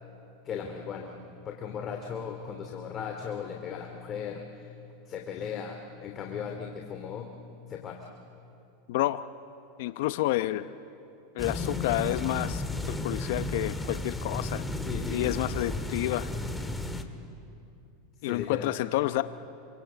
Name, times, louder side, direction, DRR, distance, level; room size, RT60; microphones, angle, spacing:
voice 1, 0.4-1.2 1.4-4.7 5.1-7.3 7.7-8.0 9.9-10.0 14.9-15.3 18.2-18.8, left 7 dB, 35° left, 2 dB, 2.6 m, -37 dB
voice 2, 8.9-9.2 9.8-10.7 11.3-14.6 15.1-16.3 18.2-19.2, left 16 dB, 70° left, 12 dB, 0.8 m, -29 dB
sound 1, 11.4-17.0, left 2 dB, 10° left, 1.9 m, -33 dB
26.5 x 25.0 x 8.5 m, 2.7 s
supercardioid pair, 115°, 0 cm